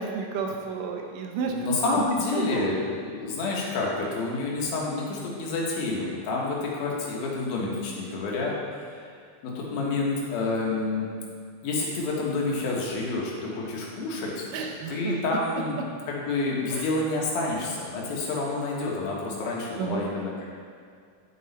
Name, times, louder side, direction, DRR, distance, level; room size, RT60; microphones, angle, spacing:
voice 1, 0.0-1.5 1.9-2.0 2.3-2.7 14.5-15.4 16.7-16.9 19.8-20.0, right 5 dB, 75° right, 1 dB, 2.1 m, -31 dB
voice 2, 1.5-9.1 9.4-11.1 11.6-14.5 14.9-20.4, left 3 dB, 85° left, -3 dB, 3.2 m, -29 dB
10.0 x 6.2 x 4.2 m, 2.2 s
omnidirectional pair, 4.1 m